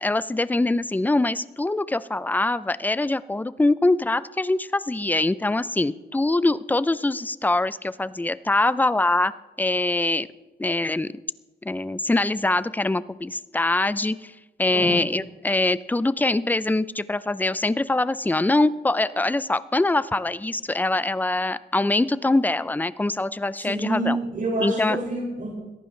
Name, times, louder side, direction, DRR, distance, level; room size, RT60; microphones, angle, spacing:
voice 1, 0.0-9.3 9.6-10.3 10.6-11.1 11.6-14.3 14.6-24.2 24.6-25.0, left 2 dB, 10° left, 16 dB, 0.5 m, -23 dB
voice 2, 23.6-25.5, right 1 dB, 55° right, -6 dB, 5.9 m, -27 dB
21.5 x 14.5 x 3.3 m, 1.2 s
cardioid pair, 95°, 18 cm